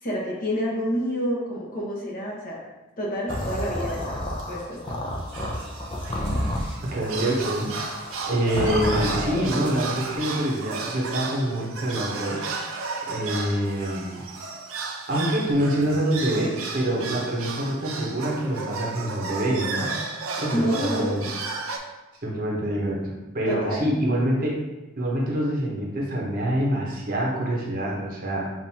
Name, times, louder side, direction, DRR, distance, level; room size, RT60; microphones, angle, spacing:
voice 1, 0.0-2.6 3.0-5.0 20.5-21.2 23.4-23.8, equal, 40° left, -4 dB, 1.1 m, -28 dB
sound 1, 3.3-9.6, left 1 dB, 25° left, 0.5 m, -30 dB
sound 2, 3.3-4.1 4.4-4.5 4.7-4.9 5.3-21.8, right 4 dB, 70° right, 0.6 m, -34 dB
voice 2, 6.8-7.7 8.3-12.4 13.1-14.2 15.1-19.9 20.4-21.3 22.2-24.6 25.0-28.5, right 1 dB, 40° right, -3 dB, 0.9 m, -26 dB
7.0 x 2.6 x 2.8 m, 1.1 s
head